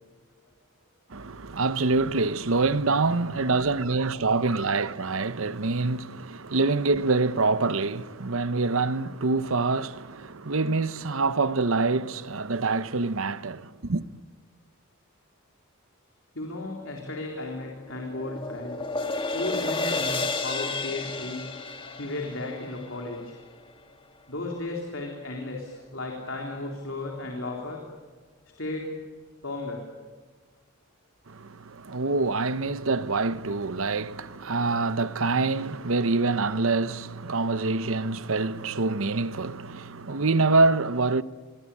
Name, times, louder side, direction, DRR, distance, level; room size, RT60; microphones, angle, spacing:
voice 1, 1.1-14.0 31.3-41.2, right 3 dB, 65° right, 0.9 m, -25 dB
voice 2, 16.3-18.8 19.3-23.4 24.3-27.9 28.5-29.0 29.4-29.9, left 2 dB, 60° left, 3.8 m, -35 dB
sound 1, 17.4-23.7, left 3 dB, 25° left, 1.9 m, -32 dB
28.5 x 23.0 x 8.6 m
head